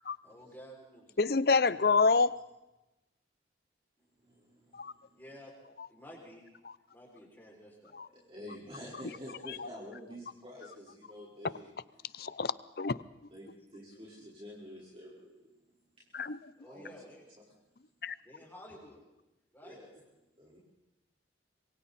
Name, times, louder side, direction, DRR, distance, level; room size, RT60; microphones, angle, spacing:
voice 1, 0.2-1.1 5.2-5.5 5.9-6.6 6.9-8.0 16.6-17.3 18.2-19.0 19.5-19.8, equal, 10° left, -3 dB, 6.3 m, -52 dB
voice 2, 1.2-2.3 4.7-4.9 7.9-8.1 9.6-9.7 12.1-13.0 16.1-16.4 18.0-18.1, left 4 dB, 55° left, 17 dB, 0.7 m, -27 dB
voice 3, 4.2-5.2 8.1-11.7 13.3-15.3 16.7-16.9 17.5-17.6 19.6-19.9 20.4-20.6, equal, 30° right, -5 dB, 4.5 m, -48 dB
26.5 x 23.0 x 4.3 m, 0.95 s
head